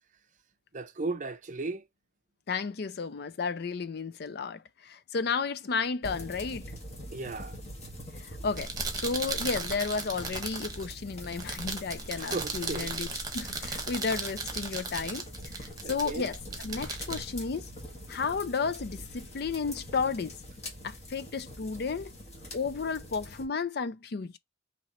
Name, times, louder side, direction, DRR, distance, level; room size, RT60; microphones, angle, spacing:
voice 1, 0.7-1.8 7.1-7.6 12.2-12.9 15.8-16.3, right 3 dB, 40° right, 0.5 m, -35 dB
voice 2, 2.5-6.7 8.2-13.1 13.3-15.2 15.6-17.7 18.1-20.3 20.8-22.1 22.5-24.4, left 5 dB, 55° left, 0.5 m, -33 dB
sound 1, 6.0-23.4, left 1 dB, 35° left, 1.5 m, -44 dB
sound 2, 8.4-18.2, right 4 dB, 20° right, 1.1 m, -37 dB
4.4 x 2.9 x 4.1 m
head